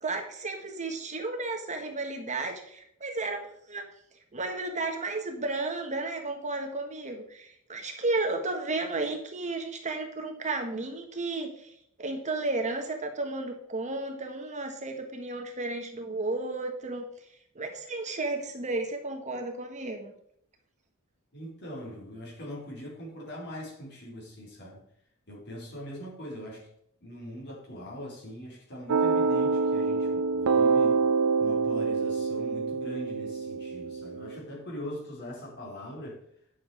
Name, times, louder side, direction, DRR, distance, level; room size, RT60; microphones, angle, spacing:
voice 1, 0.0-3.8 4.3-11.7 12.0-17.1 17.5-20.1, right 2 dB, 35° right, 4 dB, 1.4 m, -33 dB
voice 2, 21.3-24.8 25.3-26.7 27.0-31.0 31.4-36.2, equal, 50° left, -2 dB, 4.2 m, -41 dB
sound 1, 28.9-34.4, right 4 dB, 80° right, 0.5 m, -26 dB
10.5 x 7.0 x 4.9 m, 0.70 s
head